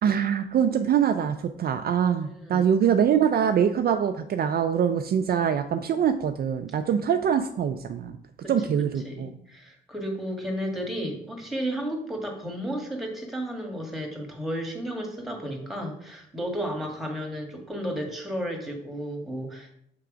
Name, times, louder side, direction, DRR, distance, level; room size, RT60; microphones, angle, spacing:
voice 1, 0.0-8.2 8.5-9.3, right 8 dB, 50° right, 7 dB, 0.4 m, -24 dB
voice 2, 2.2-2.7 8.4-8.5 9.0-19.7, equal, ahead, 2 dB, 1.6 m, -33 dB
6.7 x 3.4 x 5.0 m, 0.71 s
cardioid pair, 90°, 20 cm